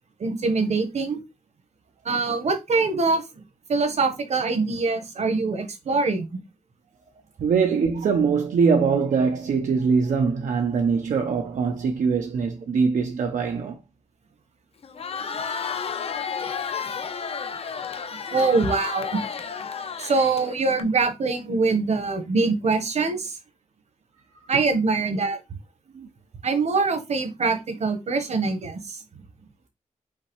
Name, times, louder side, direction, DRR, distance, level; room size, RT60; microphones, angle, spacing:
voice 1, 0.2-1.2 2.0-3.2 3.7-6.3 18.3-19.2 20.0-23.4 24.5-25.4 26.4-29.0, right 4 dB, 60° right, 1.2 m, -23 dB
voice 2, 7.4-13.8 25.9-26.1, right 5 dB, 75° right, 0.7 m, -22 dB
Crowd, 14.8-20.8, left 6 dB, 50° left, 0.5 m, -32 dB
5.7 x 2.8 x 3.2 m
cardioid pair, 95°, 13 cm